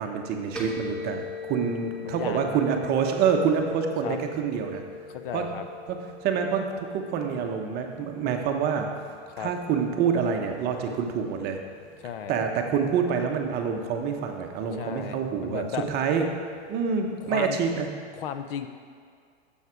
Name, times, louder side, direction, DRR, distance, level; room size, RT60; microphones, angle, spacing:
voice 1, 0.0-4.8 5.3-5.4 5.9-6.0 6.2-8.9 9.4-11.6 12.3-16.3 16.7-17.9, right 6 dB, 25° right, 3 dB, 0.9 m, -27 dB
sound 1, 0.6-17.9, left 3 dB, 5° left, 0.9 m, -44 dB
voice 2, 2.0-2.6 4.0-4.2 5.1-5.6 9.3-9.5 12.0-12.4 14.8-15.9 17.2-17.6 18.1-18.7, left 9 dB, 50° left, 8 dB, 0.6 m, -35 dB
9.1 x 7.2 x 5.0 m, 2.1 s
hypercardioid pair, 135°, 36 cm